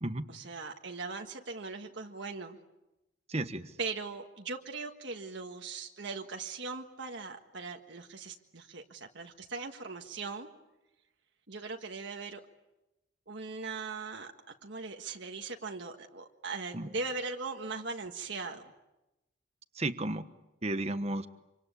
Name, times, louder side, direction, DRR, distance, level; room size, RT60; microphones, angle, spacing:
voice 1, 0.3-2.6 3.8-10.5 11.5-12.4 13.3-14.3 14.6-18.7, right 4 dB, 60° right, 3 dB, 1.6 m, -40 dB
voice 2, 3.3-3.7 16.7-16.9 19.7-20.3 20.6-21.3, right 2 dB, 30° right, 10 dB, 1.2 m, -33 dB
27.0 x 25.5 x 8.3 m, 0.96 s
head